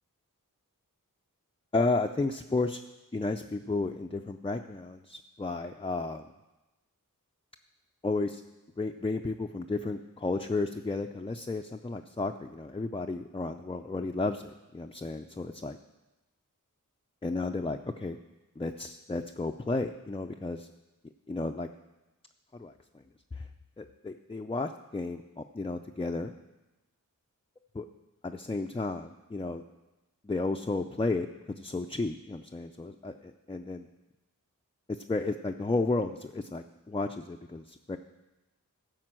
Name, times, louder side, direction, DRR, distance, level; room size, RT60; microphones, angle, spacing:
voice 1, 1.7-2.8 3.1-6.2 8.0-8.4 8.8-15.8 17.2-18.2 18.6-20.7 21.3-21.7 22.5-22.7 23.3-23.4 23.8-26.3 27.7-27.9 28.2-29.6 30.2-33.9 34.9-38.0, left 3 dB, 15° left, 4 dB, 0.4 m, -33 dB
12.5 x 5.1 x 7.5 m, 1.1 s
wide cardioid pair, 50°, 34 cm